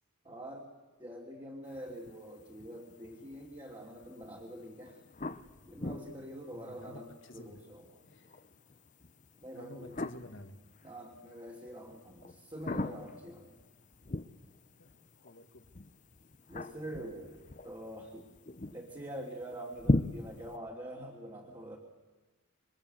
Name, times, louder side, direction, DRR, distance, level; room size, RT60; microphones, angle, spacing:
voice 1, 0.2-0.7 1.0-5.0 5.6-8.0 9.4-10.0 10.8-13.6 16.5-17.4 17.6-18.3 18.7-21.8, right 1 dB, 20° right, -2 dB, 2.9 m, -45 dB
sound 1, 1.6-20.6, left 2 dB, 35° left, 0.8 m, -41 dB
voice 2, 6.5-7.7 8.1-8.4 9.5-10.6 14.8-14.9 15.2-15.6, left 1 dB, 65° left, 7 dB, 2.0 m, -51 dB
26.5 x 24.5 x 8.0 m, 1.2 s
head